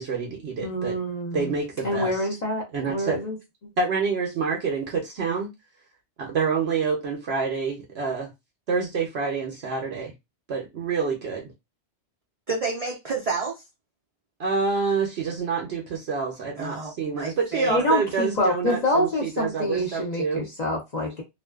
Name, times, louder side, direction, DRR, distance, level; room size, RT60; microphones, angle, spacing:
voice 1, 0.0-1.0 1.3-2.2 2.7-3.2 3.8-5.5 6.2-8.3 8.7-10.1 10.5-11.5 14.4-20.5, right 5 dB, 70° right, 0.9 m, -27 dB
voice 2, 0.6-1.5 1.8-3.4 17.7-21.2, equal, 40° left, 0.8 m, -26 dB
voice 3, 12.5-13.6 16.6-17.9, right 4 dB, 45° right, 0.5 m, -30 dB
2.5 x 2.2 x 2.3 m
omnidirectional pair, 1.2 m